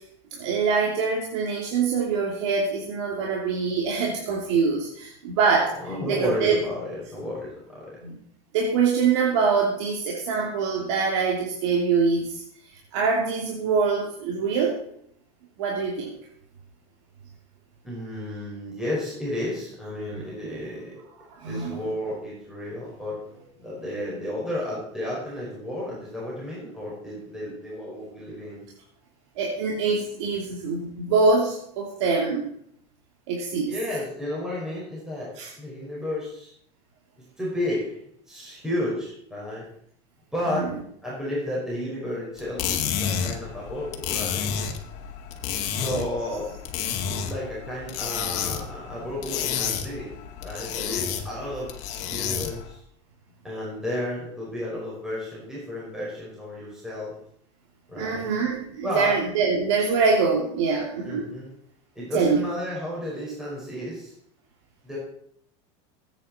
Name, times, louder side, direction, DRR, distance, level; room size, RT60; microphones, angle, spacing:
voice 1, 0.3-5.8 6.0-6.6 8.0-8.2 8.5-12.4 12.9-14.8 15.6-16.2 21.3-21.8 29.4-32.5 33.3-33.7 35.4-35.5 40.5-40.7 45.9-46.0 57.9-61.3 62.1-62.4, right 5 dB, 80° right, -1 dB, 2.9 m, -24 dB
voice 2, 5.8-8.0 17.8-21.0 21.5-23.2 23.6-28.6 33.7-35.3 35.6-36.5 37.4-38.0 38.3-39.6 40.3-40.7 41.0-44.5 45.5-46.5 47.1-50.1 50.4-51.7 52.1-52.8 53.4-57.1 57.9-58.3 58.8-59.1 61.0-61.5 62.0-64.1 64.8-65.0, left 1 dB, 5° right, -6 dB, 5.2 m, -32 dB
sound 1, 42.4-52.7, left 8 dB, 50° left, 2.1 m, -30 dB
19.0 x 9.3 x 4.3 m, 0.67 s
supercardioid pair, 150°, 15 cm